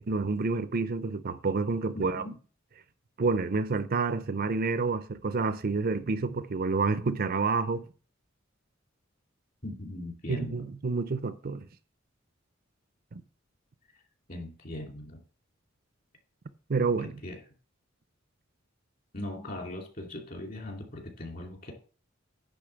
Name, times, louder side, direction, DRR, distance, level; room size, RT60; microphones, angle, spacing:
voice 1, 0.0-2.3 3.2-7.9 10.3-11.7 13.1-13.2 16.7-17.1, right 4 dB, 50° right, 0.6 m, -29 dB
voice 2, 1.9-2.4 9.6-10.6 14.3-15.2 17.0-17.4 19.1-21.7, left 1 dB, 45° left, 2.8 m, -39 dB
10.0 x 3.9 x 7.0 m
head